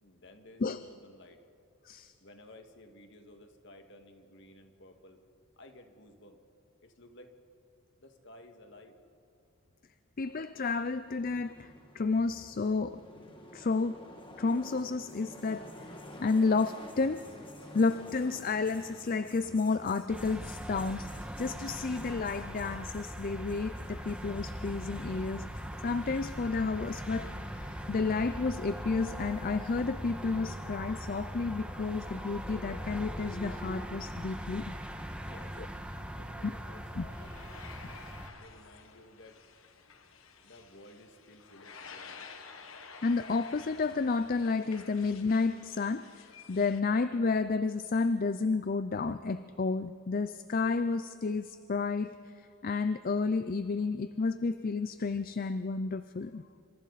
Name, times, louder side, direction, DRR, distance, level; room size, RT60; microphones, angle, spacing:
voice 1, 0.0-1.4 2.2-5.2 5.6-6.4 6.8-7.3 8.0-9.0 35.2-35.6 35.9-37.8 38.3-39.4 40.4-42.3, left 1 dB, 60° left, 5 dB, 1.9 m, -55 dB
voice 2, 10.2-13.0 13.5-14.0 14.4-15.7 16.2-17.2 17.7-34.8 36.4-36.5 37.0-37.1 43.0-56.4, left 4 dB, 45° left, 12 dB, 0.5 m, -31 dB
sound 1, 10.2-27.9, left 1 dB, 25° left, 2.1 m, -52 dB
sound 2, 20.1-38.3, equal, 5° right, 1.5 m, -41 dB
sound 3, 37.1-46.8, left 5 dB, 75° left, 1.5 m, -51 dB
27.0 x 26.0 x 4.1 m, 2.7 s
head